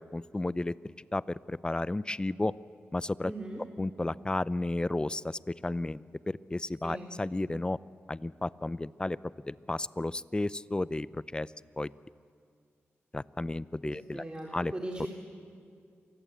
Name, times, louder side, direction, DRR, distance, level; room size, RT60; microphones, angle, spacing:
voice 1, 0.0-2.5 2.9-3.3 3.8-7.8 8.1-11.9 13.1-14.2 14.5-14.7 15.0-15.1, left 2 dB, 20° left, 17 dB, 0.6 m, -33 dB
voice 2, 3.2-3.6 6.8-7.1 13.8-15.1, right 1 dB, 20° right, -2 dB, 3.7 m, -39 dB
28.5 x 24.0 x 8.4 m, 2.2 s
cardioid pair, 70°, 5 cm